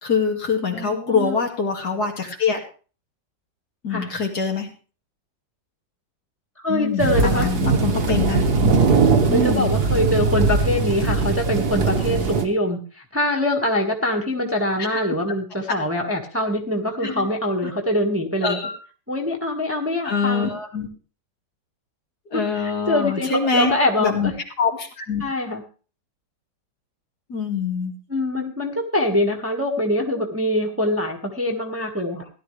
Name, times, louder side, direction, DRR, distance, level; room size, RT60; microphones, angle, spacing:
voice 1, 0.0-2.6 3.8-4.7 6.7-8.5 9.3-9.7 14.8-15.0 15.7-15.8 17.0-17.3 17.6-17.7 18.4-18.8 20.0-20.9 22.3-23.7 24.0-24.3 24.6-25.2 27.3-28.0, left 5 dB, 60° left, 2 dB, 2.7 m, -24 dB
voice 2, 0.7-1.4 3.9-4.1 6.6-7.8 9.3-18.6 19.1-20.5 22.3-24.3 25.2-25.6 28.1-32.3, left 1 dB, 10° right, 1 dB, 1.5 m, -24 dB
sound 1, 7.0-12.4, right 4 dB, 65° right, 2.0 m, -20 dB
16.5 x 11.5 x 3.3 m, 0.37 s
omnidirectional pair, 1.9 m